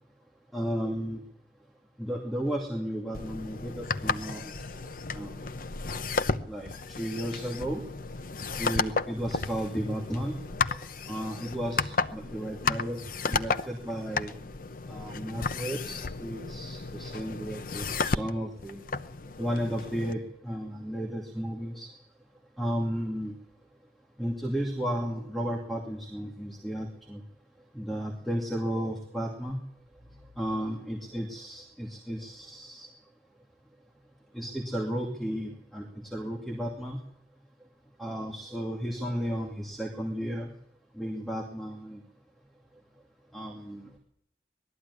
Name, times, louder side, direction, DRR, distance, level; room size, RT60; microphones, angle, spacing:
voice 1, 0.5-1.2 2.0-4.5 5.1-5.4 6.5-7.8 8.6-10.4 11.1-13.0 13.3-14.3 14.9-18.8 19.4-21.9 22.6-23.3 24.2-27.2 27.7-29.6 30.4-32.9 34.3-37.0 38.0-40.5 41.0-42.0 43.3-43.9, equal, ahead, 0 dB, 2.5 m, -33 dB
sound 1, 3.1-20.1, left 4 dB, 50° left, 0.8 m, -33 dB
20.0 x 13.5 x 9.7 m, 0.72 s
head